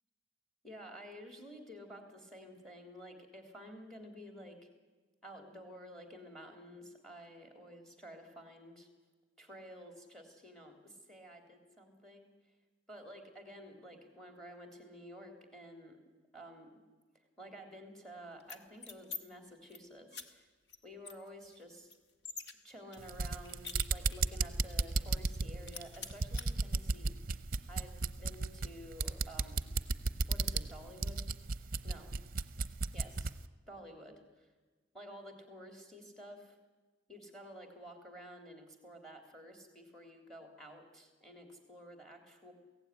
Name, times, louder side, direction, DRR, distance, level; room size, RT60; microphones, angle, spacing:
voice 1, 0.6-4.7 5.2-8.9 9.4-12.3 12.9-16.0 16.3-16.8 17.4-20.5 20.8-21.9 22.6-27.2 27.7-29.6 30.3-31.3 31.8-32.2 32.9-33.3 33.7-34.5 34.9-36.6 37.1-42.5, equal, 5° left, 5 dB, 3.3 m, -51 dB
sound 1, 18.4-19.2 19.5-19.8 20.1-20.2 20.7-20.8 21.0-22.5 22.9-24.3 24.7-24.8 25.1-25.4 25.7-26.5, left 5 dB, 55° left, 1.7 m, -46 dB
sound 2, 23.0-33.4, right 3 dB, 45° right, 0.7 m, -35 dB
22.5 x 16.5 x 9.9 m, 1.3 s
head